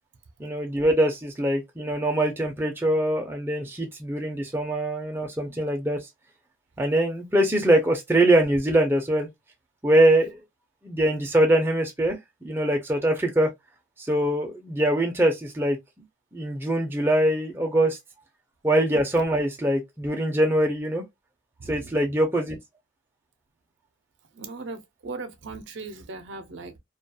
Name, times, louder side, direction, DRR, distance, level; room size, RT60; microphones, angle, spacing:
voice 1, 0.4-6.0 6.8-9.3 9.8-10.4 10.8-12.2 12.4-13.5 14.1-15.8 16.3-18.0 18.6-21.0 21.7-22.6, right 1 dB, 10° right, 0.4 m, -23 dB
voice 2, 21.6-22.0 24.3-26.8, right 3 dB, 65° right, 0.5 m, -38 dB
2.3 x 2.3 x 2.6 m
head